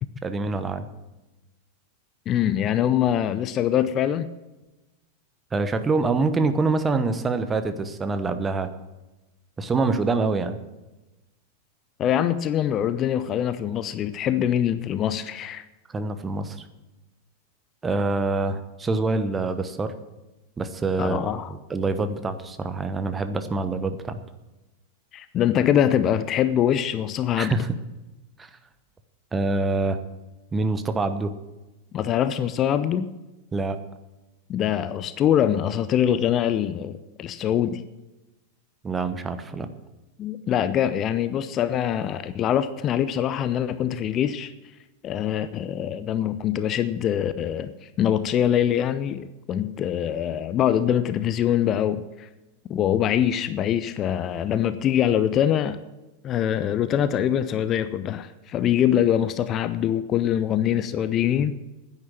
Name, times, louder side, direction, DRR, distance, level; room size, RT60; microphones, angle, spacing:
voice 1, 0.2-0.9 5.5-8.7 9.6-10.6 15.9-16.6 17.8-19.9 20.6-24.2 27.4-27.7 28.4-28.5 29.3-30.0 30.5-31.3 33.5-33.8 38.8-39.7, right 3 dB, 15° right, 10 dB, 1.0 m, -25 dB
voice 2, 2.3-4.3 12.0-15.6 21.0-21.5 25.1-27.5 31.9-33.1 34.5-37.8 40.2-44.5 45.0-52.3 52.7-55.8 56.2-61.6, left 10 dB, 30° left, 13 dB, 0.6 m, -24 dB
10.0 x 9.7 x 7.5 m, 1.1 s
figure-of-eight pair, 90°, 0 cm